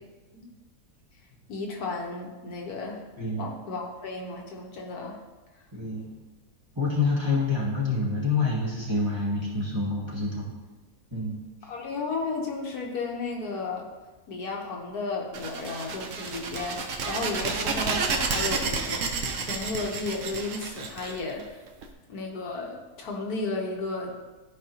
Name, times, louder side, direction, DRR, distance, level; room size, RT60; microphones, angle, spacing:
voice 1, 1.5-3.0 3.4-5.2 11.6-13.9 14.3-21.6 22.1-24.2, left 3 dB, 70° left, 0 dB, 1.5 m, -34 dB
voice 2, 3.2-3.5 5.7-6.1 6.7-10.5 11.1-11.7, left 3 dB, 15° right, -7 dB, 1.8 m, -27 dB
sound 1, 15.3-21.8, right 4 dB, 60° right, 1.0 m, -30 dB
12.5 x 4.9 x 2.8 m, 1.2 s
omnidirectional pair, 1.7 m